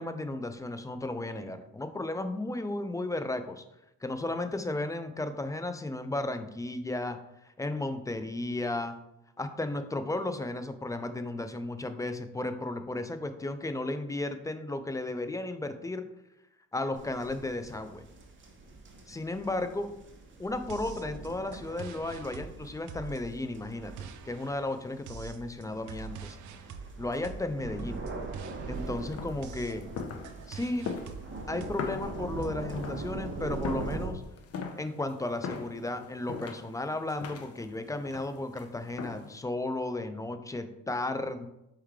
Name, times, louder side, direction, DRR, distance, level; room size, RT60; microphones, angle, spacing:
voice 1, 0.0-3.6 4.0-9.0 9.4-16.1 16.7-18.0 19.1-19.9 20.4-26.4 27.0-28.0 28.7-29.9 30.5-30.9 31.5-34.2 34.8-41.5, left 2 dB, 10° left, 9 dB, 0.3 m, -34 dB
sound 1, 16.9-34.1, right 3 dB, 40° right, 0.8 m, -42 dB
sound 2, 20.7-32.5, right 6 dB, 75° right, 0.5 m, -46 dB
sound 3, 28.8-39.4, left 5 dB, 55° left, 0.6 m, -42 dB
4.4 x 3.2 x 3.6 m, 0.85 s
cardioid pair, 90°, 30 cm